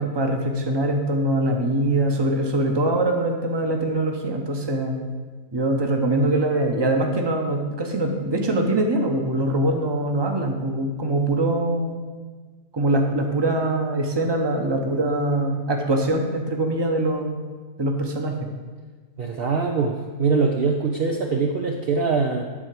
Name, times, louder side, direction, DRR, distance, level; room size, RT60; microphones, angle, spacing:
voice 1, 0.0-5.0 5.5-12.0 12.7-17.4 17.8-18.4, right 1 dB, 20° right, 3 dB, 0.9 m, -23 dB
voice 2, 19.2-22.4, right 4 dB, 55° right, 2 dB, 0.8 m, -23 dB
10.0 x 4.5 x 7.6 m, 1.4 s
omnidirectional pair, 1.4 m